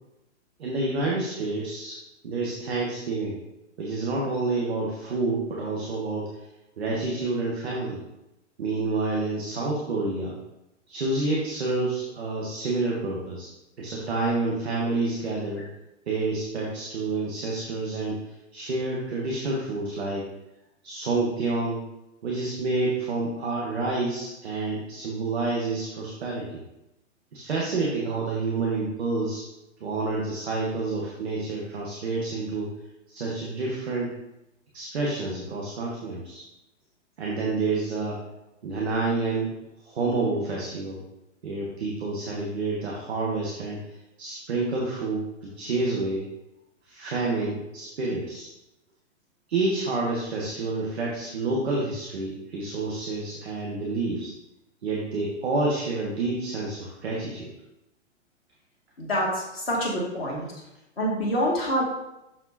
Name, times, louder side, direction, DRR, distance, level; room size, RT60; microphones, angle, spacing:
voice 1, 0.6-3.4 3.8-6.5 6.8-8.0 8.6-10.4 10.9-15.7 16.1-20.3 20.8-21.8 22.2-26.6 27.3-29.5 29.8-32.7 33.1-34.1 34.7-36.4 37.2-38.2 38.6-39.5 39.8-41.0 41.4-46.3 46.8-48.5 49.5-54.3 54.8-57.5, right 3 dB, ahead, -3 dB, 0.4 m, -28 dB
voice 2, 59.0-60.4 61.0-61.8, equal, 50° left, -2 dB, 2.4 m, -26 dB
6.0 x 5.0 x 4.1 m, 0.91 s
hypercardioid pair, 180°, 37 cm